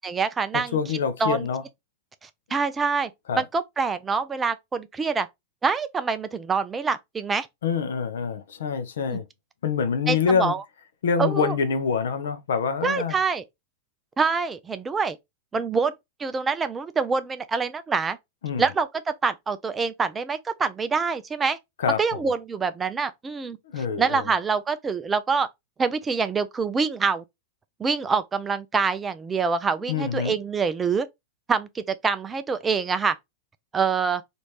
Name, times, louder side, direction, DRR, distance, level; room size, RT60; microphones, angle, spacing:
voice 1, 0.0-0.8 1.2-1.4 2.2-3.1 3.4-5.3 5.6-7.5 9.1-9.2 10.1-10.6 11.2-11.5 12.8-13.4 14.2-15.2 15.5-15.9 16.2-18.2 18.6-18.9 19.2-21.6 22.0-23.6 24.0-25.5 25.8-27.2 27.8-31.1 31.5-33.1 33.7-34.2, right 5 dB, 15° right, 0.4 m, -25 dB
voice 2, 0.5-1.6 3.3-3.4 7.6-9.3 9.6-10.5 11.0-13.2 18.4-18.6 21.8-22.3 23.7-24.3 29.9-30.4, left 6 dB, 65° left, 0.6 m, -26 dB
3.0 x 2.5 x 3.2 m
figure-of-eight pair, 90°, 0 cm